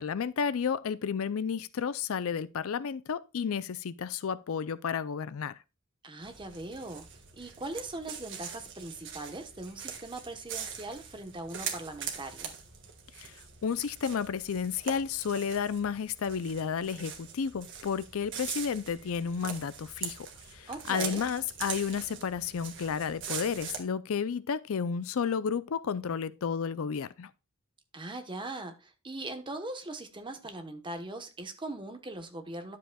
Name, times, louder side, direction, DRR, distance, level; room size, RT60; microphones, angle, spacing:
voice 1, 0.0-5.5 13.2-13.3 13.6-20.3 20.5-27.3, left 6 dB, 65° left, 0.4 m, -32 dB
voice 2, 6.0-7.1 7.4-12.5 20.7-21.2 27.9-32.8, right 2 dB, 20° right, 1.1 m, -40 dB
sound 1, 6.2-23.8, right 7 dB, 55° right, 1.7 m, -42 dB
11.0 x 7.5 x 2.3 m
head